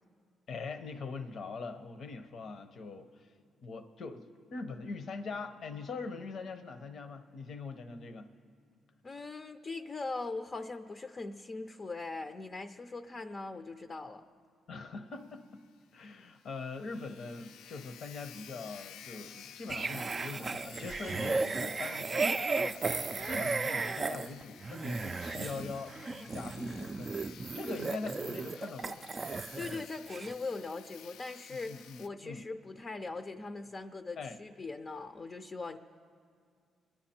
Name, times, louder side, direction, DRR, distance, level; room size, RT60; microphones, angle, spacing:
voice 1, 0.5-3.3 3.6-8.3 14.7-15.6 15.9-29.1 31.5-32.4 34.2-34.4, left 4 dB, 60° left, 8 dB, 0.8 m, -42 dB
voice 2, 9.0-14.2 29.6-35.8, left 3 dB, 35° left, 7 dB, 0.5 m, -40 dB
Sawing, 15.2-15.3 15.6-15.7 16.1-16.2 16.4-32.1, left 8 dB, 85° left, 0.4 m, -53 dB
sound 1, 19.7-29.8 30.1-30.3, right 3 dB, 30° right, 0.4 m, -35 dB
24.0 x 10.5 x 4.4 m, 2.2 s
cardioid pair, 90°, 0 cm